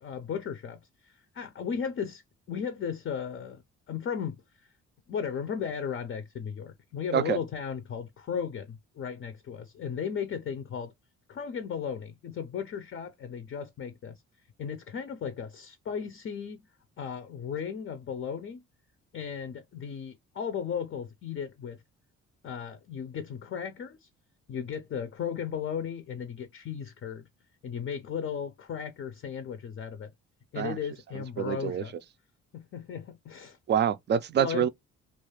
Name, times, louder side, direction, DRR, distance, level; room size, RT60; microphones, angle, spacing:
voice 1, 0.0-2.2 2.5-3.6 3.9-4.7 5.1-10.9 11.3-14.2 14.6-16.6 17.0-18.6 19.1-21.8 22.4-24.1 24.5-27.3 27.6-30.1 30.5-31.9 32.5-33.6 34.4-34.7, left 7 dB, 40° left, 0.5 m, -35 dB
voice 2, 31.4-31.8 33.7-34.7, right 8 dB, 35° right, 0.4 m, -26 dB
2.4 x 2.4 x 3.1 m
cardioid pair, 90°, 30 cm